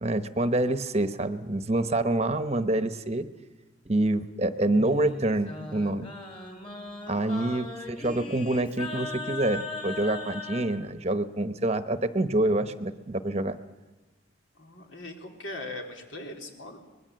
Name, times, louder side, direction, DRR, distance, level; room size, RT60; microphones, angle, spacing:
voice 1, 0.0-3.3 3.9-6.1 7.1-13.6, right 2 dB, 35° right, 10 dB, 0.9 m, -27 dB
Singing, 4.6-10.7, left 2 dB, 25° left, 3.6 m, -38 dB
voice 2, 7.1-7.6 14.5-16.8, left 2 dB, 80° left, 2 dB, 3.7 m, -40 dB
24.5 x 21.0 x 7.7 m, 1.2 s
head